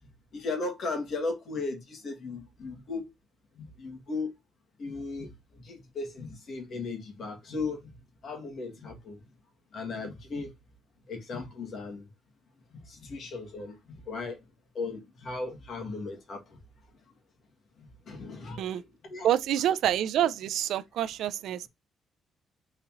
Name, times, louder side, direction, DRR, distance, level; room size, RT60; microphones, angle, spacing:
voice 1, 0.3-3.1 3.6-4.3 4.8-5.3 5.6-7.8 8.2-9.2 9.7-10.5 11.1-12.0 12.9-13.8 14.1-14.4 14.8-16.4 18.1-18.6 19.0-19.3, left 3 dB, 60° left, 1.8 m, -36 dB
voice 2, 19.2-21.7, right 11 dB, 80° right, 0.3 m, -27 dB
4.0 x 2.9 x 3.6 m
cardioid pair, 90°, 0 cm